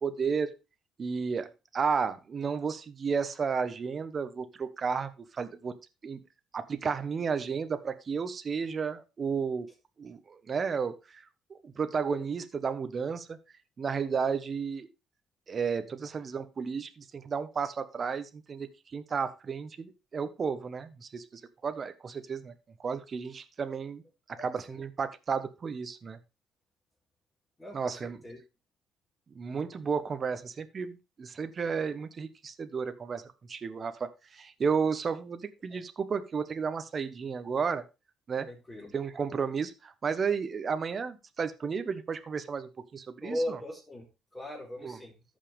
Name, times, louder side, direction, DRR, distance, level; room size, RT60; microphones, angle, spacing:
voice 1, 0.0-0.5 1.0-5.7 6.0-6.2 6.5-9.7 10.0-11.2 11.5-13.4 13.8-14.9 15.5-22.5 22.8-24.0 24.4-26.2 27.7-28.2 29.3-37.8 38.3-38.5 38.9-43.6 44.8-45.0, right 5 dB, 40° right, 11 dB, 1.1 m, -33 dB
voice 2, 24.4-24.8 27.6-28.4 35.7-35.8 38.4-38.9 43.2-44.0 44.3-45.2, equal, 15° left, -5 dB, 4.1 m, -38 dB
14.0 x 5.6 x 3.4 m, 0.27 s
cardioid pair, 95°, 0 cm